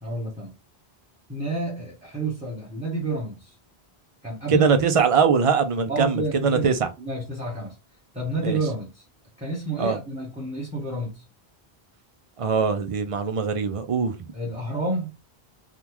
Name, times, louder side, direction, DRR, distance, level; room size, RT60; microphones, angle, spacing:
voice 1, 0.0-0.5 1.3-3.6 4.2-4.8 5.9-6.7 7.0-7.8 8.1-9.0 9.4-11.2 14.3-15.1, right 2 dB, 5° right, 1.0 m, -30 dB
voice 2, 4.5-6.9 8.4-8.6 9.8-10.0 12.4-14.1, right 5 dB, 45° right, 0.5 m, -22 dB
3.6 x 2.3 x 2.9 m
omnidirectional pair, 1.1 m